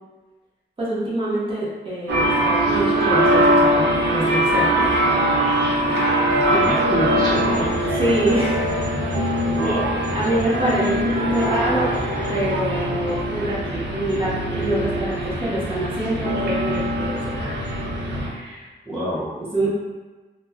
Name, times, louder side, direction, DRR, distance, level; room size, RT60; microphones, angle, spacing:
voice 1, 0.8-5.0 5.8-6.4 8.0-8.6 9.0-9.4 9.6-9.8 10.1-11.9 12.3-17.6 18.2-18.7 19.5-19.7, right 1 dB, 30° right, -8 dB, 0.9 m, -26 dB
sound 1, 2.1-18.3, right 1 dB, 75° right, 0.6 m, -22 dB
voice 2, 6.5-7.7 9.5-9.9 18.9-19.3 19.6-19.7, right 1 dB, ahead, -10 dB, 0.5 m, -27 dB
2.3 x 2.1 x 3.4 m, 1.2 s
wide cardioid pair, 175°, 18 cm